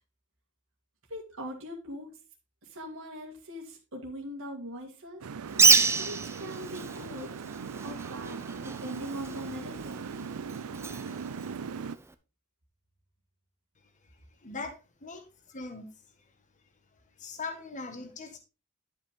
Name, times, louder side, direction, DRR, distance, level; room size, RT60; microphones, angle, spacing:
voice 1, 1.1-2.1 2.6-5.2 6.0-7.3 7.8-10.1, equal, 65° right, -1 dB, 1.9 m, -41 dB
sound 1, 5.2-12.0, right 6 dB, 85° right, 0.5 m, -39 dB
Bird, 5.5-12.1, right 4 dB, 10° right, 0.6 m, -29 dB
voice 2, 14.4-15.9 17.2-18.4, left 3 dB, 35° left, 6 dB, 1.4 m, -40 dB
11.5 x 5.4 x 3.6 m, 0.30 s
head